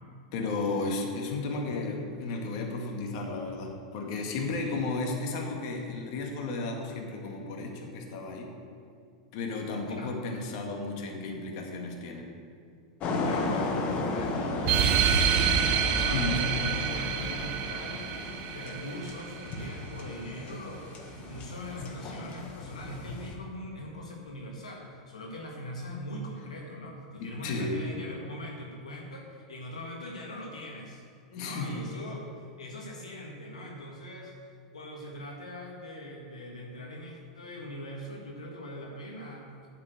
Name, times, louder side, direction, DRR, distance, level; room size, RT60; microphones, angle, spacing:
voice 1, 0.3-8.5 9.3-12.3 16.1-16.4 27.2-27.8 31.3-31.8, left 3 dB, 60° left, 1 dB, 2.0 m, -33 dB
sound 1, 13.0-23.4, left 2 dB, 40° left, 1.5 m, -35 dB
voice 2, 13.2-15.5 15.8-31.0 31.4-34.3 34.7-39.5, left 1 dB, 90° left, -1 dB, 1.7 m, -41 dB
sound 2, 14.6-19.7, right 8 dB, 50° right, 1.0 m, -28 dB
8.4 x 7.3 x 7.9 m, 2.2 s
hypercardioid pair, 105°, 4 cm